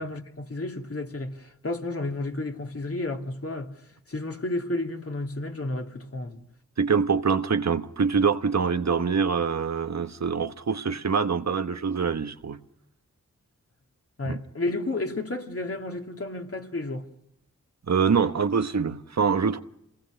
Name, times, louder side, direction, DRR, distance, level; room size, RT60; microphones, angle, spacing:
voice 1, 0.0-3.7 4.1-6.4 14.2-17.0, left 2 dB, 50° left, 2.6 m, -32 dB
voice 2, 6.8-12.6 14.2-14.4 17.9-19.6, right 5 dB, 60° right, 1.1 m, -24 dB
27.0 x 19.5 x 6.5 m
cardioid pair, 55°, 31 cm